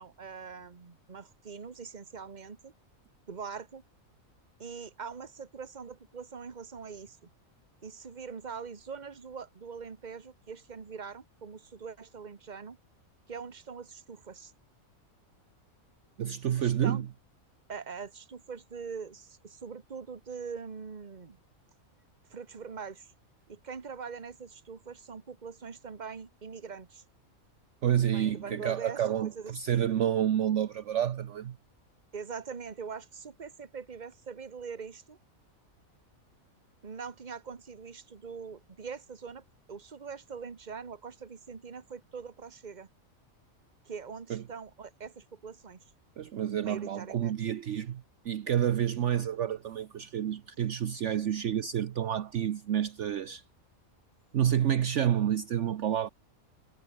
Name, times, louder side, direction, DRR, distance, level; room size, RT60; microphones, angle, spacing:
voice 1, 0.0-2.7 3.3-3.8 4.6-7.3 7.8-12.8 13.3-14.5 16.6-17.0 17.7-21.4 22.3-23.1 23.5-27.0 28.1-29.8 32.1-35.2 36.8-42.9 43.8-45.8 46.6-47.3, right 5 dB, 35° right, 1.4 m, -43 dB
voice 2, 16.2-17.1 27.8-31.6 44.3-44.4 46.2-53.4 54.3-56.1, right 10 dB, 60° right, 1.1 m, -29 dB
omnidirectional pair, 1.5 m